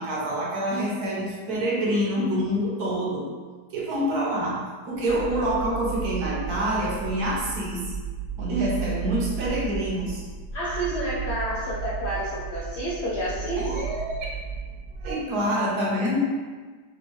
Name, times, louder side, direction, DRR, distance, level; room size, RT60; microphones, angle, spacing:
voice 1, 0.0-3.3 3.7-7.9 8.4-10.3 13.6-14.2 15.0-16.2, equal, 65° right, -4 dB, 1.2 m, -26 dB
sound 1, 5.0-15.1, right 8 dB, 5° left, 0.8 m, -34 dB
voice 2, 10.5-13.7, equal, 75° left, -7 dB, 0.6 m, -29 dB
3.5 x 2.4 x 3.0 m, 1.4 s
omnidirectional pair, 1.9 m